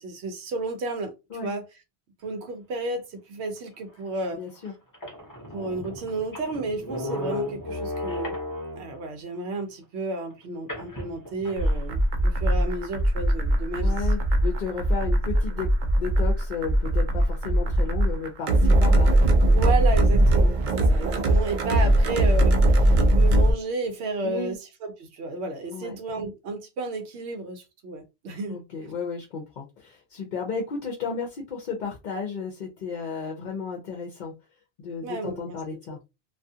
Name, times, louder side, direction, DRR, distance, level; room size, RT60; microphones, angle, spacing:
voice 1, 0.0-1.1 1.4-1.6 2.2-4.4 5.5-8.4 8.7-14.1 19.5-28.6 28.8-28.9 35.0-35.8, right 3 dB, 85° right, 0.9 m, -32 dB
sound 1, 4.0-4.1 4.6-4.7 4.9-9.0 10.7-11.8, left 1 dB, 20° left, 0.7 m, -34 dB
voice 2, 4.3-4.7 13.8-15.7 16.0-19.1 20.8-21.0 24.2-24.6 25.7-26.0 28.5-34.3 34.8-36.0, left 5 dB, 55° left, 0.6 m, -33 dB
sound 2, 11.6-23.5, right 1 dB, 55° right, 0.6 m, -20 dB
2.4 x 2.3 x 2.6 m
omnidirectional pair, 1.1 m